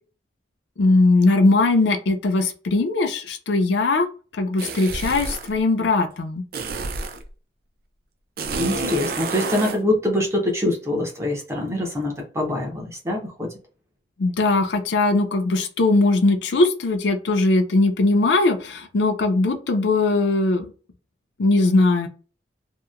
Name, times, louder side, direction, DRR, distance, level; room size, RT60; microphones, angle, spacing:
voice 1, 0.8-4.1 4.4-6.4 14.2-20.7 21.4-22.1, left 2 dB, 85° left, 5 dB, 0.5 m, -20 dB
Edited raspberries, 4.6-5.5 6.5-7.2 8.4-9.8, right 3 dB, 55° right, 0.4 m, -29 dB
voice 2, 8.5-13.5, left 1 dB, 15° right, 0 dB, 0.7 m, -24 dB
2.8 x 2.1 x 2.4 m, 0.37 s
head